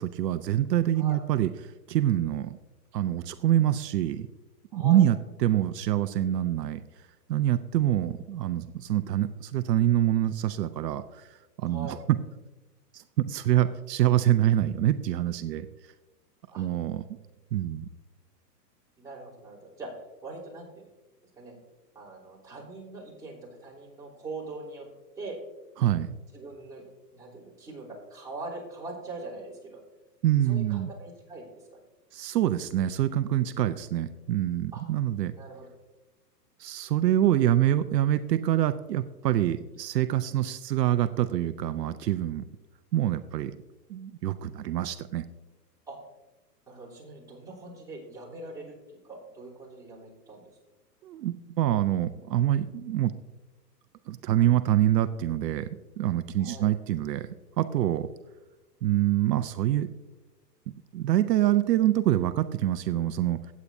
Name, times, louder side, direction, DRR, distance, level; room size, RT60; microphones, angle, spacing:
voice 1, 0.0-2.6 2.9-4.3 4.7-5.2 5.4-6.8 7.3-12.2 12.9-15.7 16.6-17.0 17.5-17.9 25.8-26.1 30.2-30.9 32.1-35.3 36.6-42.5 42.9-43.5 43.9-45.2 51.0-53.1 54.1-58.1 58.8-59.9 60.9-63.4, right 12 dB, 75° right, 12 dB, 0.6 m, -25 dB
voice 2, 4.7-5.1 11.7-12.0 16.5-16.7 19.0-20.9 21.4-21.6 21.9-24.9 25.2-25.4 26.3-26.8 27.1-29.8 30.4-31.8 34.7-34.8 35.4-35.7 45.9-46.0 46.7-50.4 56.4-56.7, right 2 dB, 5° right, -8 dB, 3.3 m, -42 dB
15.5 x 8.4 x 2.7 m, 1.1 s
hypercardioid pair, 140°, 50 cm